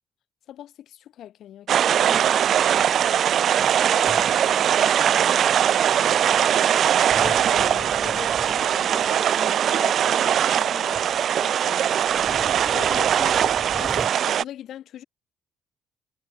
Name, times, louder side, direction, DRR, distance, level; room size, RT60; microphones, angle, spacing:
voice 1, 0.5-2.6 7.1-12.1 12.7-15.0, left 11 dB, 60° left, 1.1 m, -41 dB
sound 1, 1.7-14.4, right 9 dB, 50° right, 0.4 m, -21 dB
sound 2, 2.5-3.2 4.1-5.3 7.1-9.2 10.0-10.1 10.6-10.7 10.9-11.3 12.1-14.1, right 1 dB, 5° right, 0.8 m, -41 dB
voice 2, 3.6-6.4 13.1-13.6, left 5 dB, 30° left, 1.6 m, -43 dB
cardioid pair, 145°, 0 cm